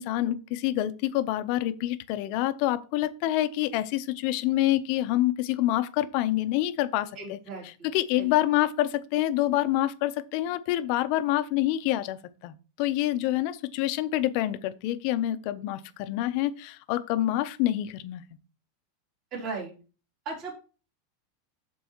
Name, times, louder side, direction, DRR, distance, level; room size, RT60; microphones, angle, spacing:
voice 1, 0.0-7.4 7.9-18.2, left 14 dB, 45° left, 0.7 m, -27 dB
voice 2, 7.1-7.9 8.1-8.6 19.3-19.7 20.2-20.5, right 4 dB, 30° right, 3.1 m, -37 dB
13.5 x 4.6 x 3.0 m
supercardioid pair, 165°, 0 cm